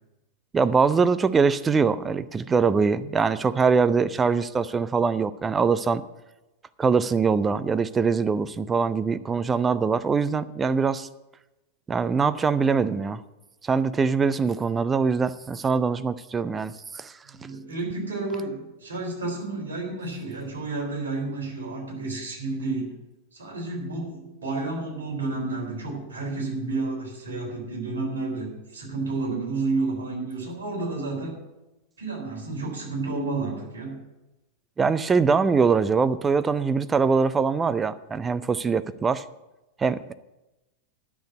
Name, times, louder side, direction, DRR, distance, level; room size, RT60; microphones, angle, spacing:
voice 1, 0.5-6.0 6.8-11.1 11.9-13.2 13.6-17.1 34.8-39.2 39.8-40.1, right 5 dB, 15° right, 13 dB, 0.5 m, -23 dB
voice 2, 17.2-23.0 23.3-31.4 32.0-34.0, right 3 dB, 70° right, -1 dB, 3.8 m, -31 dB
10.5 x 6.6 x 8.1 m, 0.99 s
figure-of-eight pair, 90°, 0 cm